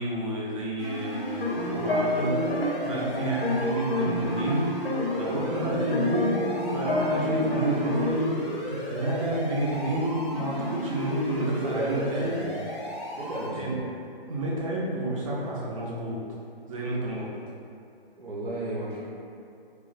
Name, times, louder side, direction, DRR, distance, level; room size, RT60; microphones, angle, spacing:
voice 1, 0.0-12.4 13.5-13.8 14.3-16.2 16.7-17.4, right 1 dB, 35° right, -5 dB, 0.5 m, -30 dB
sound 1, 0.8-13.5, equal, 30° left, 0.5 m, -35 dB
sound 2, 1.3-4.6 4.8-8.1, left 2 dB, 85° left, 0.8 m, -28 dB
voice 2, 11.6-12.5 13.2-13.9 18.2-19.0, right 1 dB, 75° right, -7 dB, 0.7 m, -33 dB
2.3 x 2.1 x 3.9 m, 2.6 s
figure-of-eight pair, 145°, 29 cm